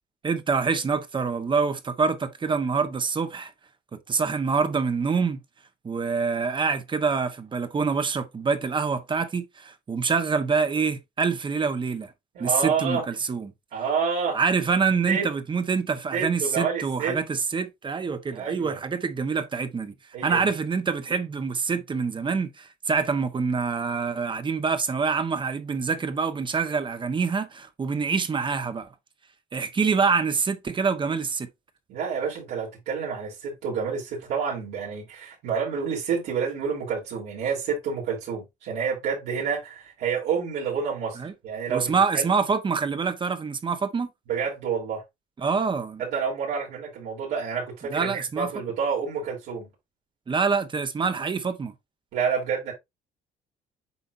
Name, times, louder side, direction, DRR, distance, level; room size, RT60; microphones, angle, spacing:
voice 1, 0.2-3.5 3.9-5.4 5.8-12.1 12.4-13.5 14.3-19.9 20.2-28.9 29.5-31.5 41.2-41.3 41.7-44.1 45.4-46.0 47.9-48.5 50.3-51.7, right 5 dB, 30° right, 1.1 m, -26 dB
voice 2, 12.3-13.0 13.7-14.4 15.1-15.3 16.1-17.2 18.3-18.8 20.1-20.4 31.9-42.3 44.3-45.0 46.0-49.7 52.1-52.7, right 6 dB, 85° right, 3.5 m, -28 dB
8.2 x 5.0 x 2.6 m
cardioid pair, 110°, 17 cm